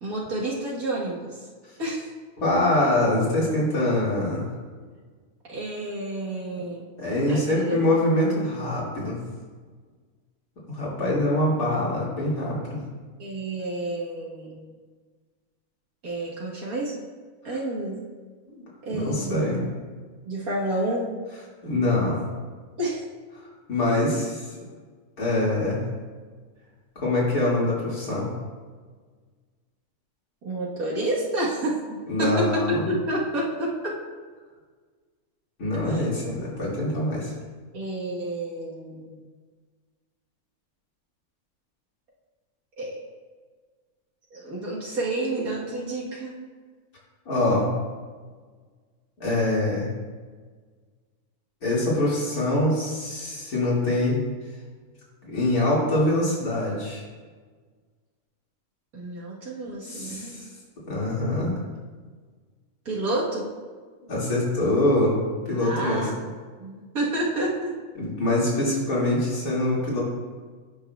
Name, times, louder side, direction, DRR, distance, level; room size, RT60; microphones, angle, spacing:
voice 1, 0.0-1.5 1.8-2.1 5.5-6.9 7.3-8.0 13.2-14.7 16.0-16.9 17.4-18.1 18.8-19.8 20.3-21.1 22.8-23.0 30.4-33.9 35.8-36.1 37.7-39.2 42.8-43.0 44.3-46.4 58.9-60.4 62.9-63.5 65.5-66.3 66.6-67.7, right 1 dB, 75° right, -5 dB, 1.9 m, -29 dB
voice 2, 2.4-4.5 7.0-9.2 10.7-12.8 18.5-18.6 18.9-19.6 21.6-22.2 23.7-24.5 25.2-25.8 27.0-28.3 32.1-32.9 35.6-37.3 47.3-47.7 49.2-49.9 51.6-54.2 55.2-57.0 59.8-60.5 60.9-61.5 64.1-65.2 65.5-66.0 68.0-70.0, left 1 dB, 85° left, -6 dB, 2.9 m, -24 dB
17.0 x 6.0 x 2.3 m, 1.5 s
omnidirectional pair, 1.5 m